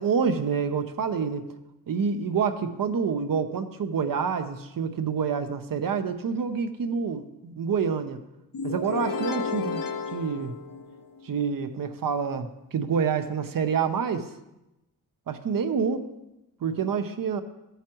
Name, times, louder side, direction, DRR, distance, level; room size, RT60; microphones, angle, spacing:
voice 1, 0.0-1.5 1.9-8.2 8.6-10.5 11.2-14.3 15.3-16.1 16.6-17.4, right 6 dB, 65° right, 8 dB, 0.8 m, -27 dB
sound 1, 8.5-11.4, left 4 dB, 60° left, 0.8 m, -32 dB
13.5 x 8.2 x 3.0 m, 0.94 s
cardioid pair, 80°, 36 cm